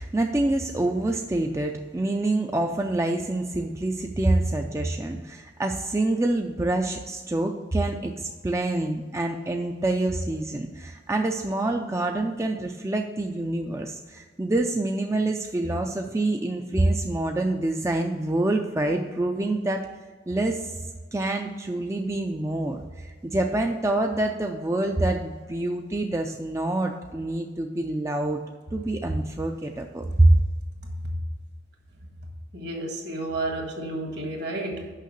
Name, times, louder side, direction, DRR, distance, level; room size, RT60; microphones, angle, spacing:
voice 1, 0.0-19.9 20.3-20.8 21.1-28.4 28.7-30.4, right 2 dB, 15° right, 3 dB, 0.4 m, -26 dB
voice 2, 32.5-34.9, right 2 dB, 65° right, 2 dB, 1.8 m, -31 dB
6.5 x 5.6 x 6.6 m, 1.4 s
head